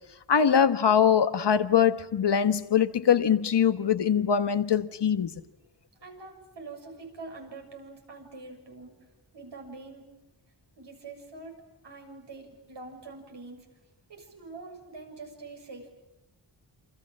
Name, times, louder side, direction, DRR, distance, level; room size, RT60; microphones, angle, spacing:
voice 1, 0.3-5.3, left 8 dB, 80° left, 1.3 m, -22 dB
voice 2, 6.0-9.1 9.3-10.1 10.8-13.7 14.1-15.9, right 3 dB, 85° right, 7.1 m, -45 dB
28.0 x 27.5 x 7.6 m
wide cardioid pair, 110°, 41 cm